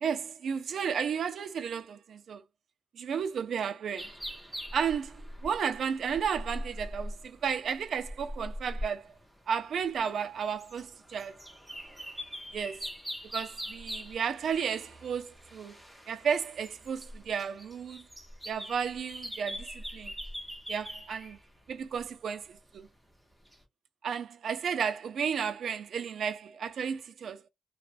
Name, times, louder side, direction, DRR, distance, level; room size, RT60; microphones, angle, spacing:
voice 1, 0.0-2.4 2.9-4.1 4.7-9.1 9.5-11.4 12.5-12.9 13.3-15.8 16.1-18.0 18.5-20.1 20.7-21.4 21.7-22.9 24.0-27.4, right 7 dB, 60° right, 0.3 m, -33 dB
sound 1, 4.0-22.1 22.5-22.6 23.5-23.6, equal, 5° right, 0.6 m, -42 dB
3.0 x 2.1 x 2.4 m
wide cardioid pair, 180°, 0 cm